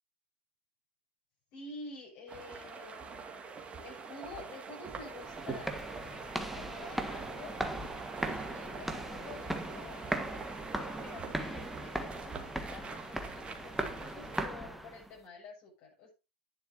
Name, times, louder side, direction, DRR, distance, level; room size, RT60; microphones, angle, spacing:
voice 1, 1.5-3.5 3.8-5.7 6.5-7.6 8.3-10.3 10.8-16.1, left 3 dB, 45° left, -4 dB, 7.0 m, -49 dB
sound 1, 2.3-14.5, right 5 dB, 20° right, 2.4 m, -45 dB
sound 2, 5.1-15.1, right 1 dB, ahead, 1.6 m, -38 dB
11.5 x 10.5 x 2.9 m, 0.28 s
hypercardioid pair, 105°, 5 cm